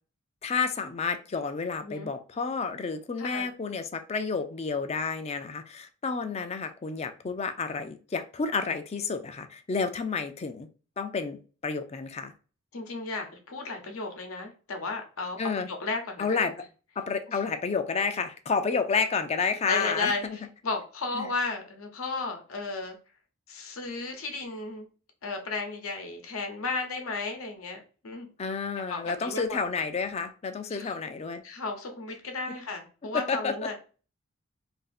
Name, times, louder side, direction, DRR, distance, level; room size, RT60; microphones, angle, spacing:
voice 1, 0.4-10.7 11.0-12.3 15.4-15.7 16.2-16.6 17.0-20.4 21.1-21.3 28.4-31.4 33.1-33.8, left 5 dB, 30° left, 0.4 m, -30 dB
voice 2, 1.8-2.1 3.2-3.5 12.7-15.4 15.7-16.5 17.3-17.4 19.7-23.0 23.5-24.9 25.2-28.3 28.9-29.6 30.7-30.9 31.4-33.8, left 3 dB, 80° left, 0.9 m, -34 dB
2.8 x 2.7 x 4.0 m
head